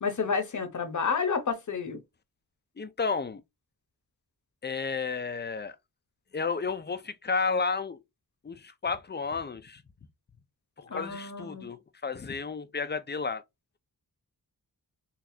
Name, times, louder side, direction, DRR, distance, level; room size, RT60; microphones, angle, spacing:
voice 1, 0.0-2.0 10.9-11.7, left 5 dB, 50° left, 0.8 m, -30 dB
voice 2, 2.8-3.4 4.6-5.8 6.3-8.0 8.4-9.8 10.8-13.4, left 4 dB, 30° left, 0.4 m, -32 dB
4.1 x 2.3 x 2.7 m
wide cardioid pair, 115°, 38 cm